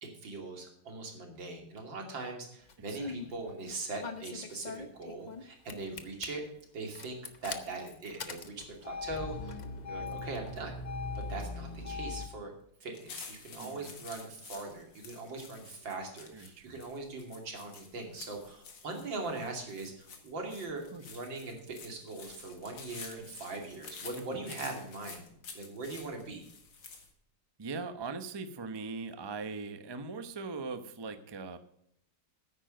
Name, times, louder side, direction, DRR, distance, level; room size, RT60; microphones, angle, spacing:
voice 1, 0.0-6.4 6.7-9.6 9.9-10.8 11.1-12.5 12.8-25.2 25.5-26.5, right 3 dB, 85° right, 2 dB, 3.3 m, -41 dB
Engine starting, 2.7-3.3 4.0-5.4 5.7-6.3 6.9-12.3, left 3 dB, 35° left, 0.7 m, -40 dB
sound 1, 12.9-27.1, left 5 dB, 75° left, 2.5 m, -50 dB
voice 2, 13.5-13.9 16.3-16.8 20.9-21.0 24.2-24.5 27.6-31.6, right 4 dB, 25° right, 9 dB, 0.5 m, -41 dB
10.0 x 9.0 x 6.4 m, 0.71 s
omnidirectional pair, 2.0 m